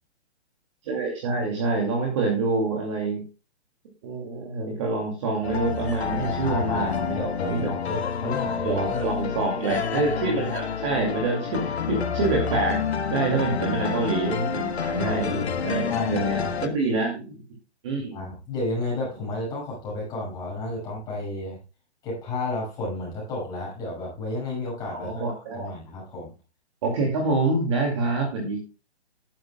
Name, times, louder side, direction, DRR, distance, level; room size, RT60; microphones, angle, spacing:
voice 1, 0.8-3.2 4.0-7.2 7.5-7.7 8.6-12.8 13.1-17.4 17.8-18.3 24.9-25.7 26.8-28.6, right 3 dB, 25° right, 0 dB, 2.4 m, -26 dB
sound 1, 5.4-16.7, left 7 dB, 70° left, 1.4 m, -29 dB
voice 2, 6.4-9.1 14.0-14.1 15.0-15.6 15.9-16.6 18.1-21.6 22.0-25.2 25.5-26.3, left 2 dB, 10° left, -4 dB, 6.3 m, -32 dB
12.5 x 11.0 x 2.3 m, 0.31 s
hypercardioid pair, 175°, 34 cm